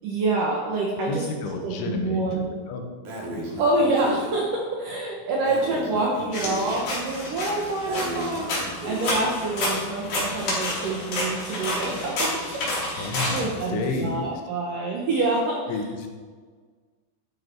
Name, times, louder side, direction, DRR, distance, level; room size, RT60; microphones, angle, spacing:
voice 1, 0.0-1.3 1.5-2.5 3.6-12.4 12.9-15.6, right 2 dB, 70° right, -2 dB, 2.0 m, -27 dB
voice 2, 1.1-2.8 3.3-3.6 13.0-14.3 15.7-16.1, left 4 dB, 75° left, 3 dB, 3.7 m, -31 dB
Breathing, 3.0-4.4 5.4-6.8 7.8-9.2, right 1 dB, 50° right, 3.2 m, -34 dB
sound 1, 6.3-14.0, left 1 dB, 40° left, 4.4 m, -29 dB
12.5 x 9.7 x 4.6 m, 1.5 s
omnidirectional pair, 5.7 m